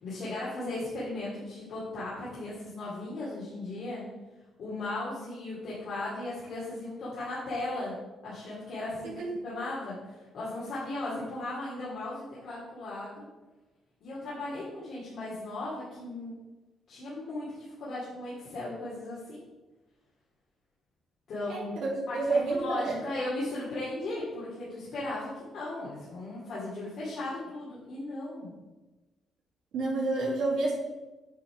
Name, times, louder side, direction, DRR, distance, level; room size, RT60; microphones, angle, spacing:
voice 1, 0.0-4.0 4.6-7.9 8.2-9.1 9.4-13.2 14.0-16.3 16.9-19.4 21.3-21.8 22.1-28.5, left 2 dB, 65° left, -9 dB, 2.5 m, -36 dB
voice 2, 21.5-23.0 29.7-30.7, right 3 dB, 75° right, -4 dB, 2.6 m, -29 dB
8.6 x 4.2 x 4.8 m, 1.1 s
cardioid pair, 90°, 0 cm